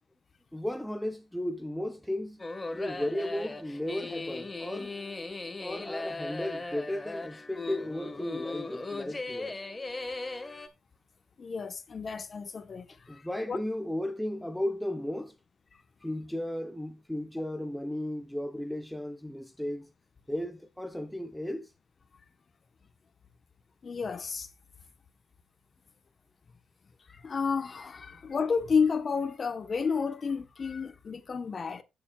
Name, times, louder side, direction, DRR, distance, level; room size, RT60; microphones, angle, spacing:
voice 1, 0.5-2.4 2.7-4.9 5.6-9.6 13.1-15.4 16.0-19.9 20.3-21.7 28.1-28.2, left 1 dB, 5° left, 0.9 m, -35 dB
sound 1, 2.4-10.7, left 3 dB, 20° left, 1.6 m, -38 dB
voice 2, 11.4-13.6 23.8-24.5 27.1-31.8, left 5 dB, 40° left, 1.2 m, -31 dB
16.5 x 7.0 x 2.4 m
cardioid pair, 90°, 0 cm